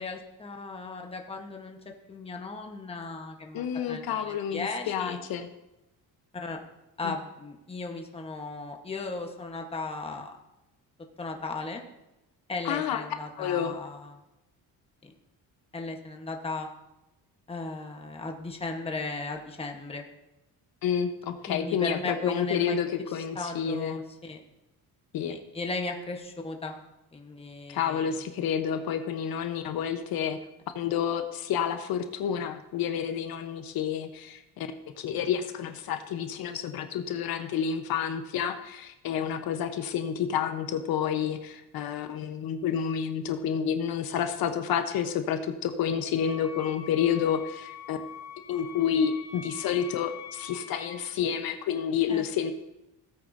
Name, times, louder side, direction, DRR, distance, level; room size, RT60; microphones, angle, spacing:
voice 1, 0.0-5.2 6.3-6.6 7.0-10.3 11.2-11.8 12.5-14.2 15.0-15.1 15.7-16.7 17.5-20.0 21.5-22.8 23.3-24.4 25.3-26.7 27.1-28.2 52.1-52.2, left 3 dB, 15° left, 3 dB, 1.2 m, -36 dB
voice 2, 3.5-5.5 7.0-7.1 12.6-13.0 13.4-13.7 20.8-24.0 25.1-25.4 27.7-30.4 30.7-34.7 35.0-48.0 48.5-52.5, left 8 dB, 70° left, 7 dB, 1.0 m, -29 dB
Wind instrument woodwind instrument, 46.1-51.1, left 7 dB, 50° left, 3.7 m, -44 dB
16.5 x 8.6 x 2.7 m, 0.93 s
cardioid pair, 140°, 37 cm